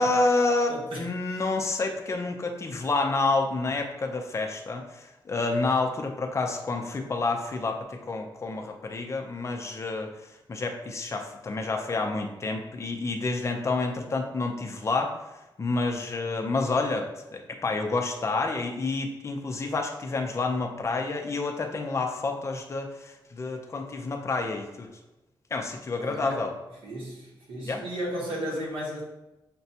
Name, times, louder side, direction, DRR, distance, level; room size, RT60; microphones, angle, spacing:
voice 1, 0.0-10.1 10.5-15.1 15.6-24.9 25.5-26.5 27.7-27.8, left 3 dB, 35° left, 3 dB, 0.5 m, -29 dB
voice 2, 0.7-1.4 26.0-26.4 26.8-29.0, equal, 80° right, -3 dB, 1.2 m, -35 dB
5.9 x 2.2 x 2.8 m, 1.0 s
wide cardioid pair, 130°, 9 cm